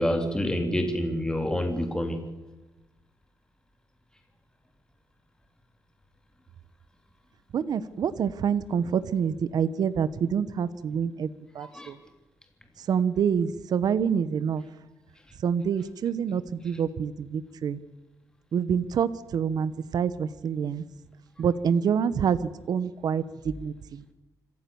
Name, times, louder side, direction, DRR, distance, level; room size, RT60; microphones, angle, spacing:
voice 1, 0.0-2.2 11.6-11.9, equal, 10° left, 5 dB, 3.2 m, -27 dB
voice 2, 7.5-11.3 11.5-12.0 12.9-14.6 15.4-17.8 18.5-20.8 21.4-22.4 22.7-24.0, right 7 dB, 70° right, 14 dB, 1.1 m, -27 dB
26.0 x 15.0 x 7.1 m, 1.1 s
cardioid pair, 120°, 7 cm